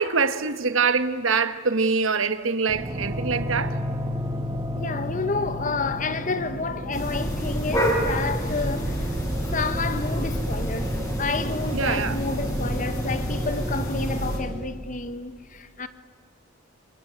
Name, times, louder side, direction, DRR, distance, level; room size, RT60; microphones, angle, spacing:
voice 1, 0.0-3.8 11.7-12.2, right 4 dB, 75° right, 1.4 m, -24 dB
sound 1, 2.7-14.7, equal, 25° right, 1.8 m, -34 dB
voice 2, 4.7-9.2 9.5-15.9, left 3 dB, 40° left, 1.2 m, -30 dB
sound 2, 6.9-14.4, equal, 15° left, 5.1 m, -27 dB
26.5 x 25.5 x 8.8 m
head